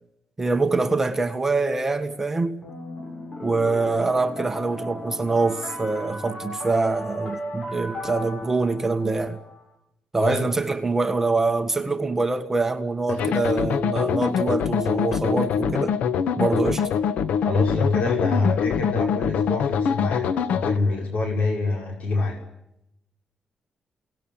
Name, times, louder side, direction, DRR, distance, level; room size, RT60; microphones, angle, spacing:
voice 1, 0.4-2.6 3.4-9.4 10.1-16.0 16.4-16.9, right 3 dB, 15° right, 1.6 m, -24 dB
sound 1, 2.6-9.6, equal, 40° left, 7.9 m, -35 dB
sound 2, 13.2-20.8, left 7 dB, 90° left, 1.3 m, -24 dB
voice 2, 17.4-22.4, left 3 dB, 65° left, 5.9 m, -26 dB
29.0 x 19.0 x 8.8 m
wide cardioid pair, 145°, 2 cm